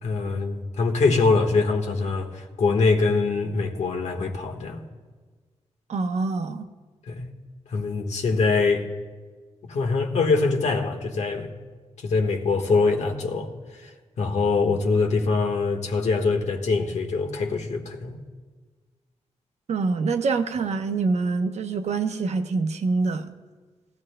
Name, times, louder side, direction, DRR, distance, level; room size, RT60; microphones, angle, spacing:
voice 1, 0.0-4.8 7.1-7.3 7.7-8.9 9.6-11.5 12.0-13.5 13.8-13.9 14.2-18.2, left 4 dB, 80° left, 1.4 m, -23 dB
voice 2, 5.9-6.7 19.7-23.3, right 4 dB, 75° right, 0.8 m, -25 dB
19.0 x 14.5 x 2.2 m
cardioid pair, 85°, 12 cm